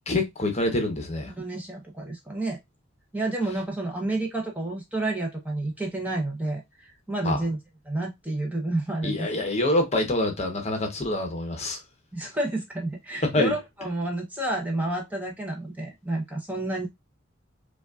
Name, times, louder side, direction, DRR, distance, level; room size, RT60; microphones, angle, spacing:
voice 1, 0.1-1.3 7.2-7.4 9.0-11.8 13.2-13.5, left 1 dB, 35° left, 0.8 m, -26 dB
voice 2, 1.4-2.6 3.1-7.6 7.9-9.5 12.1-16.9, right 2 dB, 10° right, 0.7 m, -30 dB
5.1 x 2.3 x 2.3 m
head